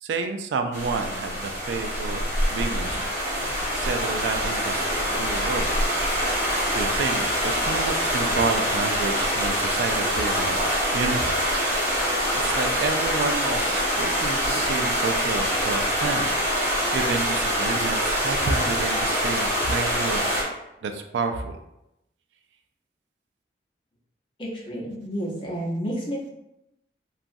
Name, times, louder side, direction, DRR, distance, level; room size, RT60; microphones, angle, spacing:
voice 1, 0.0-2.2 2.5-5.9 6.7-10.6 10.9-11.4 11.8-16.3 16.6-20.2 20.8-21.6, right 4 dB, 85° right, 7 dB, 0.3 m, -30 dB
sound 1, 0.7-20.4, equal, 40° right, 1.0 m, -25 dB
voice 2, 24.4-26.3, equal, 30° left, -6 dB, 0.8 m, -30 dB
2.9 x 2.4 x 2.6 m, 0.87 s
head